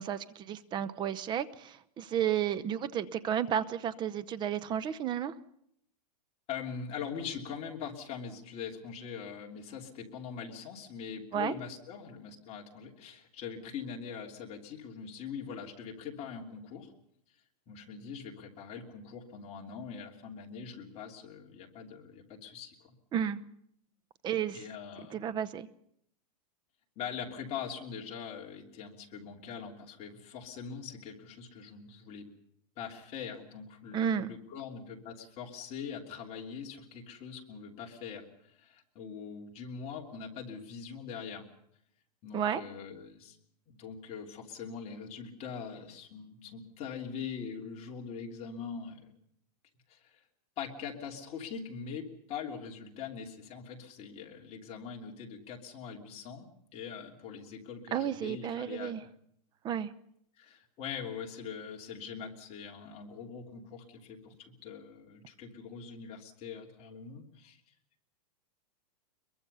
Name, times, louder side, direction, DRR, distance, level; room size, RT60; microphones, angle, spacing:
voice 1, 0.0-5.3 11.3-11.5 23.1-23.4 24.2-24.6 25.1-25.7 33.9-34.3 42.3-42.6 57.9-59.0 59.6-59.9, right 9 dB, 20° right, 15 dB, 0.8 m, -32 dB
voice 2, 6.5-16.9 17.7-22.9 24.5-25.2 27.0-32.3 32.8-41.5 42.2-43.4 43.7-49.1 49.9-50.2 50.6-56.5 56.7-59.0 60.4-67.6, left 6 dB, 30° left, 0 dB, 3.1 m, -42 dB
23.0 x 22.5 x 5.6 m, 0.71 s
hypercardioid pair, 150°, 21 cm